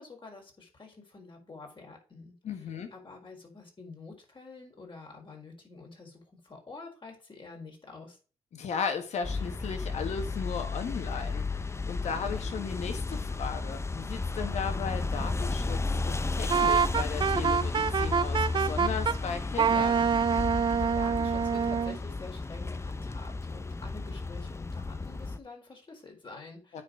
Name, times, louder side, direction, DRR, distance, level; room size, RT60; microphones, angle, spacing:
voice 1, 0.0-2.3 2.9-8.2 20.7-26.8, left 3 dB, 45° left, 4.6 m, -48 dB
voice 2, 2.4-2.9 8.5-20.1 26.7-26.8, left 6 dB, 80° left, 1.7 m, -36 dB
sound 1, 9.2-25.4, left 3 dB, 25° left, 0.7 m, -33 dB
Wind instrument woodwind instrument, 16.5-19.2 19.6-22.0, right 6 dB, 45° right, 0.4 m, -26 dB
9.6 x 4.5 x 5.1 m
cardioid pair, 60°, 12 cm